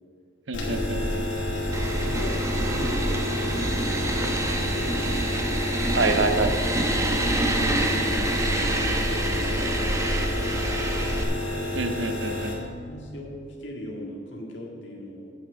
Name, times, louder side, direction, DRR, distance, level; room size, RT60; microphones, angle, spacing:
sound 1, 0.5-12.5, left 1 dB, 90° left, 2.2 m, -30 dB
voice 1, 0.5-1.3 5.9-6.5 11.7-12.5, right 3 dB, 70° right, 7 dB, 0.8 m, -26 dB
voice 2, 1.5-5.5 6.1-6.4 6.8-11.1 12.6-15.3, left 1 dB, 65° left, -1 dB, 2.0 m, -39 dB
sound 2, 1.7-11.2, right 1 dB, 15° right, 0.8 m, -27 dB
9.6 x 8.9 x 5.1 m, 2.2 s
head